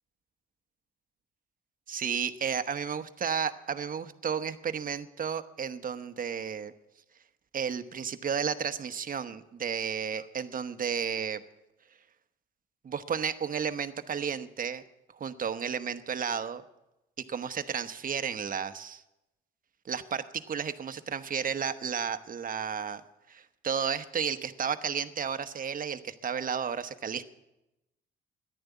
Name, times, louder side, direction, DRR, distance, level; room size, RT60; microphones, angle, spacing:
voice 1, 1.9-6.7 7.5-11.4 12.8-14.8 15.1-16.6 17.2-19.0 19.8-23.0 23.3-27.2, right 7 dB, 45° right, 10 dB, 1.0 m, -33 dB
14.0 x 11.0 x 8.2 m, 0.94 s
cardioid pair, 90°, 20 cm